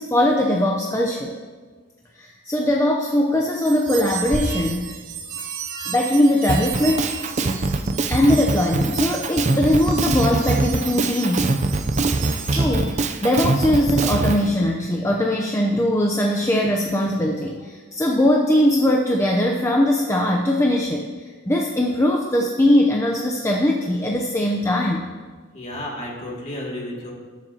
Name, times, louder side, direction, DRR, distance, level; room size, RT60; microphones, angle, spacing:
voice 1, 0.0-1.3 2.1-4.9 5.9-7.1 8.1-11.5 12.4-25.1, left 1 dB, 15° left, 0 dB, 0.6 m, -20 dB
sound 1, 3.5-13.0, right 5 dB, 85° right, 2.4 m, -33 dB
Drum kit, 6.5-14.4, right 2 dB, 35° right, 0.5 m, -22 dB
voice 2, 25.5-27.1, left 1 dB, 35° left, -3 dB, 2.3 m, -32 dB
19.5 x 7.3 x 2.9 m, 1.5 s
head